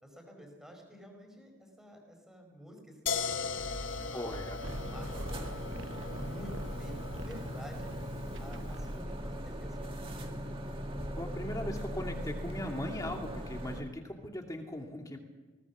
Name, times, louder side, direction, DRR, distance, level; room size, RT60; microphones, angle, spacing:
voice 1, 0.0-4.3 4.9-5.4 6.1-7.9 8.4-10.5, equal, 5° right, 2 dB, 4.8 m, -51 dB
sound 1, 3.1-8.9, left 5 dB, 80° left, 1.1 m, -39 dB
sound 2, 3.5-9.3, right 1 dB, 75° right, 1.1 m, -45 dB
voice 2, 4.1-4.6 11.2-15.2, left 1 dB, 20° left, 2 dB, 2.5 m, -39 dB
sound 3, 4.6-13.8, equal, 30° right, 1.9 m, -40 dB
20.0 x 18.5 x 7.3 m, 1.3 s
head